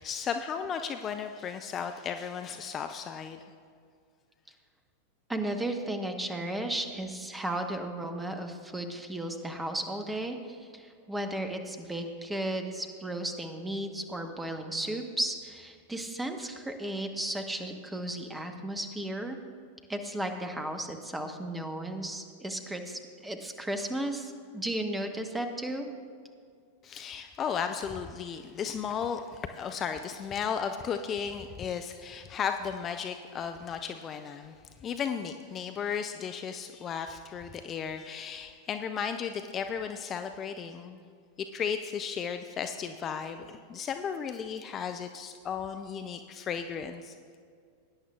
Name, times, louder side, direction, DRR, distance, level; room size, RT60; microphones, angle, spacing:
voice 1, 0.0-3.4 26.8-41.0 41.4-47.1, left 7 dB, 25° left, 7 dB, 0.4 m, -35 dB
voice 2, 5.3-19.4 19.9-25.9, right 1 dB, 10° right, 6 dB, 1.1 m, -34 dB
20.0 x 10.0 x 2.3 m, 2.2 s
figure-of-eight pair, 90°, 0 cm